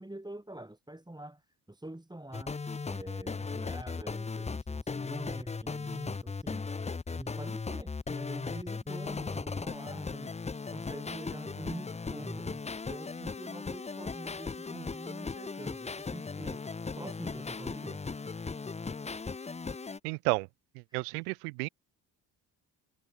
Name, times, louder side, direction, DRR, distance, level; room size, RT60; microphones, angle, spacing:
voice 1, 0.0-2.5 2.9-6.7 7.1-12.6 12.9-16.6 17.0-18.0 20.9-21.2, right 1 dB, 10° right, 4.1 m, -45 dB
sound 1, 2.3-20.0, left 4 dB, 15° left, 0.7 m, -37 dB
voice 2, 20.0-20.5 20.7-21.7, right 31 dB, 80° right, 1.0 m, -32 dB
hypercardioid pair, 45°, 46 cm